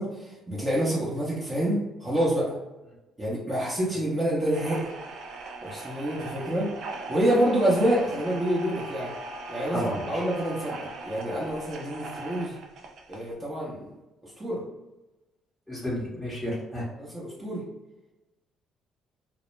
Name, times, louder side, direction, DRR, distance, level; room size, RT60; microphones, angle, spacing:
voice 1, 0.0-2.5 3.2-4.9 5.6-6.7 7.1-9.1 9.5-12.5 13.1-13.8 14.2-14.6 17.0-17.6, right 1 dB, 25° right, -6 dB, 0.8 m, -27 dB
sound 1, 4.4-13.3, right 2 dB, 65° right, 0.4 m, -39 dB
voice 2, 9.7-10.2 15.7-16.9, equal, 5° left, -7 dB, 0.8 m, -32 dB
2.1 x 2.0 x 3.1 m, 1.0 s
hypercardioid pair, 55°, 0 cm